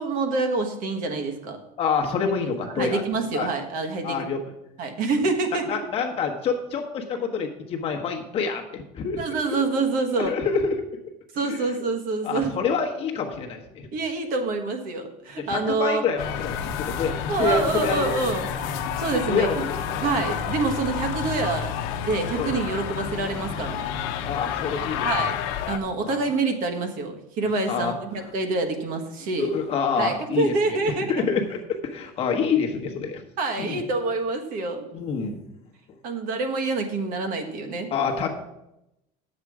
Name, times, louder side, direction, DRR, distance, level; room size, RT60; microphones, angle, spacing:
voice 1, 0.0-1.6 2.6-4.2 4.8-5.8 9.2-10.4 11.3-12.5 13.9-16.0 17.3-18.5 19.0-19.6 20.0-23.9 25.0-25.4 25.7-29.5 30.0-31.2 33.4-34.9 36.0-37.9, right 3 dB, 45° right, 5 dB, 1.3 m, -26 dB
voice 2, 1.8-3.0 3.3-3.5 4.0-4.4 5.7-9.2 10.2-10.7 11.4-11.7 12.2-13.6 15.5-17.1 17.4-18.1 19.3-19.5 19.9-20.4 22.3-22.5 24.2-25.1 26.0-26.3 27.7-27.9 29.3-33.2 33.6-33.8 34.9-35.4 37.9-38.3, left 5 dB, 30° left, 2 dB, 1.2 m, -27 dB
sound 1, 16.2-25.8, left 8 dB, 70° left, 0.9 m, -30 dB
9.8 x 7.5 x 4.8 m, 0.88 s
cardioid pair, 180°, 19 cm